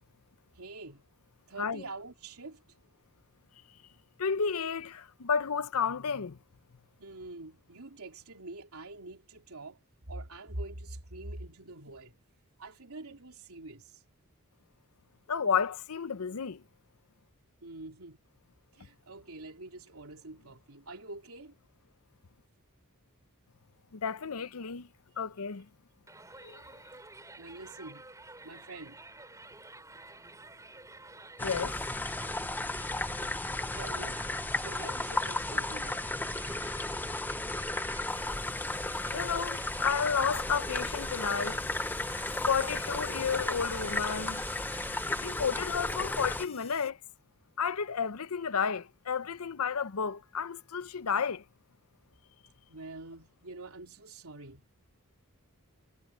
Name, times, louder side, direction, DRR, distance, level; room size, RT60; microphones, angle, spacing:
voice 1, 0.6-1.0 1.5-2.6 7.0-9.8 10.1-12.2 12.6-14.0 17.6-18.2 18.7-21.5 27.4-28.0 28.4-29.0 33.7-36.1 39.8-40.0 52.7-54.6, right 2 dB, 80° right, 3.2 m, -45 dB
voice 2, 4.2-6.4 15.3-16.6 23.9-24.9 25.2-25.7 26.4-26.6 31.4-31.8 39.1-41.6 42.5-44.4 45.2-47.0 47.6-51.4, left 6 dB, 80° left, 0.7 m, -32 dB
Crowd, 26.1-45.3, right 2 dB, 15° right, 4.4 m, -50 dB
sound 1, 31.4-46.4, left 2 dB, 10° left, 0.7 m, -34 dB
sound 2, 38.1-46.9, left 6 dB, 30° left, 4.1 m, -52 dB
head